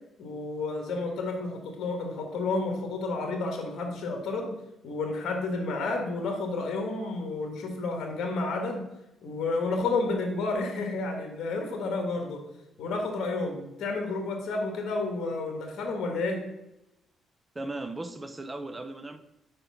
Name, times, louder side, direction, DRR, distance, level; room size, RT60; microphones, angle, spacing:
voice 1, 0.2-4.5 4.8-8.8 9.2-12.4 12.8-16.4, left 3 dB, 70° left, 3 dB, 1.6 m, -31 dB
voice 2, 17.5-19.2, right 2 dB, 20° right, 10 dB, 0.5 m, -37 dB
5.1 x 4.3 x 5.6 m, 0.91 s
cardioid pair, 90°, 0 cm